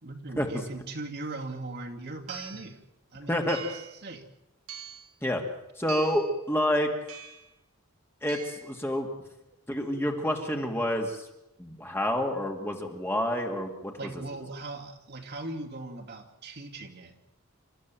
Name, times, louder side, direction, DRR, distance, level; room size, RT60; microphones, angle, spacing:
voice 1, 0.0-2.8 3.1-4.3 14.0-17.2, right 2 dB, 50° right, 1 dB, 2.6 m, -39 dB
sound 1, 1.5-1.6 2.3-2.7 3.5-4.0 4.7-5.1 5.9-6.4 7.1-7.5 8.3-8.7, right 7 dB, 85° right, 2.8 m, -42 dB
voice 2, 5.8-6.9 8.2-9.1 9.7-11.3 11.6-14.0, equal, 10° left, 3 dB, 2.4 m, -28 dB
29.0 x 14.0 x 7.7 m, 0.90 s
head